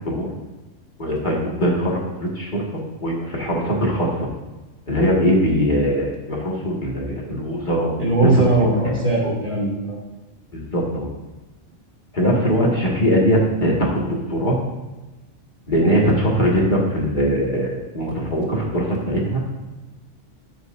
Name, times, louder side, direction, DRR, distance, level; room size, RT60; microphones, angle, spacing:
voice 1, 1.0-2.6 3.0-4.3 4.9-8.9 10.5-11.1 12.1-14.6 15.7-19.4, equal, 35° left, -3 dB, 2.1 m, -21 dB
voice 2, 8.0-10.0, right 2 dB, 40° right, -5 dB, 3.0 m, -19 dB
14.5 x 7.9 x 2.7 m, 1.1 s
omnidirectional pair, 1.3 m